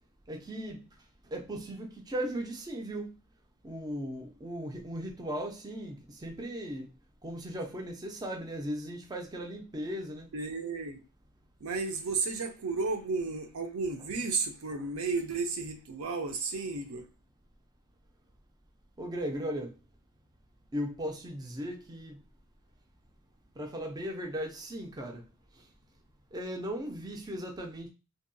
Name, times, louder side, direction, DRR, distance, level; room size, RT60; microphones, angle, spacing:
voice 1, 0.3-0.8 1.3-3.1 3.6-6.0 6.2-6.9 7.2-10.3 19.0-19.7 20.7-22.1 23.6-25.2 26.3-27.9, equal, 20° right, 0.4 m, -37 dB
voice 2, 10.3-11.0 11.6-17.1, right 4 dB, 70° right, 0.5 m, -33 dB
2.6 x 2.2 x 2.5 m
head